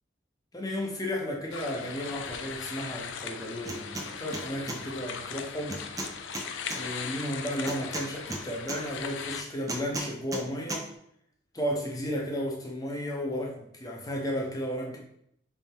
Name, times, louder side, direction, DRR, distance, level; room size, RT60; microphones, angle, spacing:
voice 1, 0.5-5.8 6.7-10.9 11.5-15.0, equal, 20° left, -1 dB, 0.8 m, -33 dB
sound 1, 1.5-9.4, left 6 dB, 75° left, 0.4 m, -39 dB
sound 2, 3.6-4.1 4.3-4.8 5.7-6.8 7.7-8.8 9.7-10.4 10.7-10.8, right 1 dB, 20° right, 0.5 m, -35 dB
3.6 x 3.4 x 4.2 m, 0.73 s
head